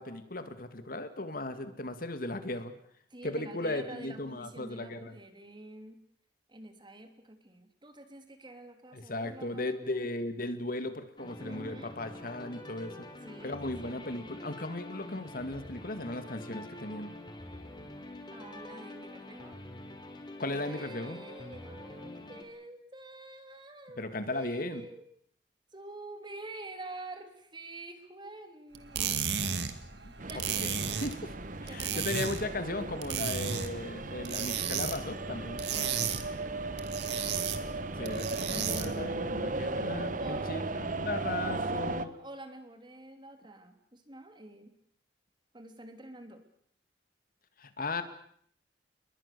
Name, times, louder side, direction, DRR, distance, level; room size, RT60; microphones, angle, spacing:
voice 1, 0.0-2.7 3.2-5.2 8.9-13.1 13.4-17.1 20.4-21.2 24.0-24.8 30.6-30.7 31.0-31.3 31.6-36.1 38.0-42.2 47.6-48.0, left 2 dB, 55° left, 10 dB, 2.3 m, -36 dB
voice 2, 3.1-6.0 6.5-10.1 11.4-11.9 13.2-14.0 18.3-19.6 20.5-25.0 25.7-29.6 29.9-30.7 31.7-32.6 36.2-37.9 40.2-40.9 41.2-44.7 45.5-46.4, right 2 dB, 25° right, 7 dB, 3.2 m, -48 dB
sound 1, 11.2-22.4, left 1 dB, 25° left, 3.7 m, -46 dB
sound 2, 28.7-39.1, right 7 dB, 75° right, 2.3 m, -35 dB
sound 3, 30.2-42.1, right 2 dB, 50° right, 1.3 m, -36 dB
29.5 x 22.0 x 6.9 m, 0.65 s
head